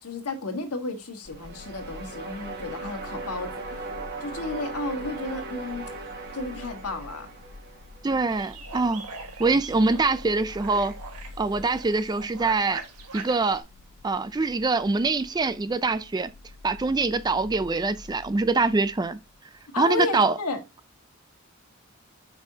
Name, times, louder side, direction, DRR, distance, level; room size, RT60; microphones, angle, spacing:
voice 1, 0.0-3.9 4.2-5.9 6.3-7.3 19.7-20.6, left 3 dB, 80° left, 1.5 m, -32 dB
sound 1, 1.2-19.6, left 3 dB, 45° left, 0.5 m, -47 dB
sound 2, 1.2-8.3, right 3 dB, 45° right, 1.5 m, -38 dB
voice 2, 8.0-9.1 9.4-10.9 11.4-12.8 13.1-13.6 14.0-16.3 16.6-19.2 19.8-20.4, right 3 dB, 20° right, 0.3 m, -24 dB
sound 3, 8.3-13.6, right 4 dB, 80° right, 1.3 m, -42 dB
6.9 x 5.3 x 2.8 m
head